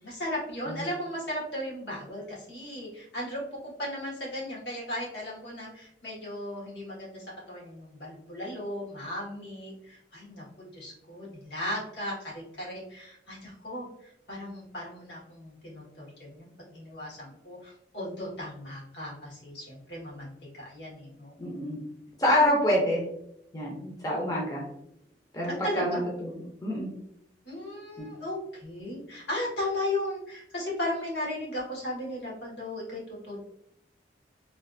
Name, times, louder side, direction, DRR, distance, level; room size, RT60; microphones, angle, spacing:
voice 1, 0.0-21.4 25.5-26.0 27.4-33.4, left 1 dB, 80° left, -5 dB, 1.5 m, -36 dB
voice 2, 21.4-21.8 22.2-23.0 23.5-24.7 25.3-26.9, left 1 dB, 20° left, -3 dB, 0.6 m, -27 dB
3.2 x 2.4 x 2.5 m, 0.75 s
head